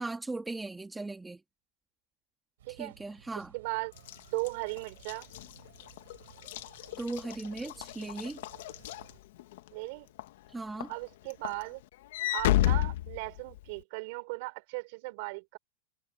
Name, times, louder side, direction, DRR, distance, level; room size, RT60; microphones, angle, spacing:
voice 1, 0.0-1.4 2.7-3.5 7.0-8.4 10.5-10.9, right 3 dB, 10° right, 2.0 m, -38 dB
sound 1, 2.6-9.2, right 12 dB, 90° right, 7.6 m, -57 dB
voice 2, 3.5-3.9 4.3-5.3 9.7-10.1 10.9-11.8 12.3-15.6, right 27 dB, 60° right, 6.0 m, -37 dB
Walk footsteps / Slam, 4.0-9.7 10.2-10.5 10.8-13.8, left 15 dB, 75° left, 1.4 m, -32 dB
supercardioid pair, 140°, 0 cm